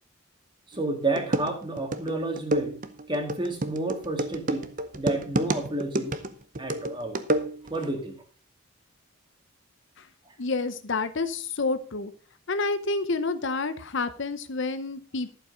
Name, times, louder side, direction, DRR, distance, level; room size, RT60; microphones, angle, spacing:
voice 1, 0.7-2.8 3.1-6.1 6.6-7.3 7.7-8.2, right 2 dB, 20° right, 4 dB, 1.9 m, -30 dB
sound 1, 0.7-0.8 1.2-7.9, right 1 dB, 35° right, 0.7 m, -29 dB
voice 2, 10.4-12.1 12.5-15.4, left 3 dB, 55° left, 12 dB, 0.7 m, -29 dB
11.5 x 7.4 x 5.1 m, 0.39 s
head